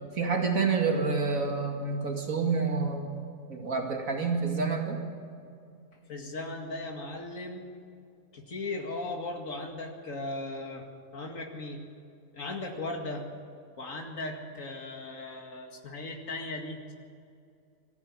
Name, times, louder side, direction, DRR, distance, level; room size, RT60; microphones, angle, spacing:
voice 1, 0.2-3.2 3.5-5.0, right 4 dB, 85° right, 2 dB, 2.6 m, -28 dB
voice 2, 6.1-7.6 8.3-10.9 11.1-11.8 12.3-13.3 13.8-16.9, left 2 dB, 75° left, 1 dB, 2.5 m, -37 dB
22.0 x 15.0 x 8.7 m, 2.4 s
omnidirectional pair, 1.4 m